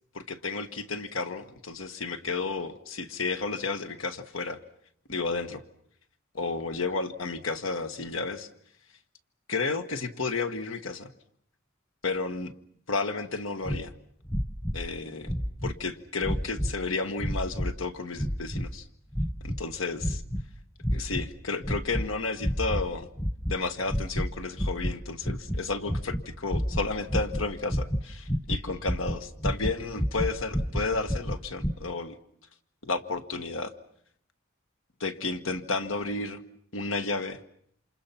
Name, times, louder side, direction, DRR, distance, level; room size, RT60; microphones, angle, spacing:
voice 1, 0.1-4.6 5.1-5.6 6.3-8.5 9.5-11.1 12.0-12.5 12.9-13.9 14.7-15.3 15.6-18.9 19.4-20.2 20.9-23.1 23.5-32.1 32.8-33.7 35.0-36.4 36.7-37.4, left 3 dB, 80° left, 9 dB, 1.5 m, -32 dB
sound 1, 13.7-13.8 14.3-14.9 15.2-15.8 16.2-16.8 17.2-17.8 18.2-18.8 19.1-19.6 20.0-20.5 20.8-21.3 21.6-22.1 22.4-22.9 23.2-23.6 23.9-24.3 24.6-31.7, equal, 15° left, 1.0 m, -30 dB
28.0 x 27.5 x 5.9 m, 0.68 s
head